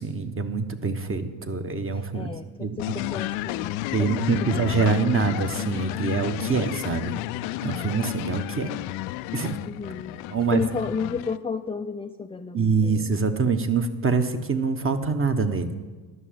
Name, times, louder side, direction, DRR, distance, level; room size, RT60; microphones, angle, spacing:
voice 1, 0.0-2.3 2.6-2.8 3.9-7.2 7.6-8.7 9.3-9.6 10.3-10.6 12.5-15.7, right 5 dB, 25° right, 8 dB, 1.1 m, -25 dB
voice 2, 1.9-5.1 8.7-8.8 9.7-10.2 10.5-13.1, left 5 dB, 15° left, 6 dB, 0.4 m, -33 dB
sound 1, 2.8-11.4, left 16 dB, 75° left, 0.5 m, -32 dB
11.0 x 6.3 x 7.6 m, 1.3 s
supercardioid pair, 70°, 48 cm